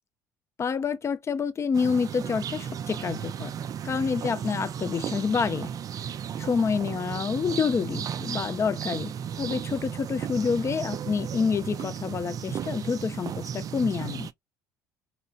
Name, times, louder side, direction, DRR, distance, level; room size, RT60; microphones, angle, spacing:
voice 1, 0.6-3.5 3.8-5.7 6.4-9.1 9.4-14.3, left 5 dB, 30° left, 0.5 m, -28 dB
sound 1, 1.7-14.3, right 8 dB, 40° right, 0.4 m, -34 dB
3.0 x 2.9 x 2.7 m
figure-of-eight pair, 60°, 9 cm